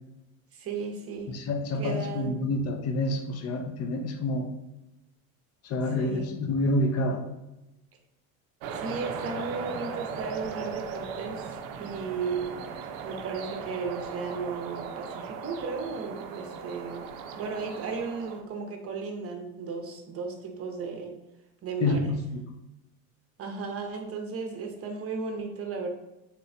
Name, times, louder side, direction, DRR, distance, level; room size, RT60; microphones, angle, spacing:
voice 1, 0.5-1.4 1.8-2.4 6.0-6.4 8.7-12.5 13.0-17.1 17.3-21.2 21.6-22.1 23.4-25.9, right 4 dB, 35° right, 4 dB, 0.7 m, -35 dB
voice 2, 1.3-4.5 5.6-7.2 21.8-22.4, left 2 dB, 40° left, 6 dB, 0.5 m, -28 dB
sound 1, 8.6-18.4, right 6 dB, 75° right, 0.5 m, -38 dB
3.1 x 3.0 x 2.6 m, 0.93 s
supercardioid pair, 95°, 41 cm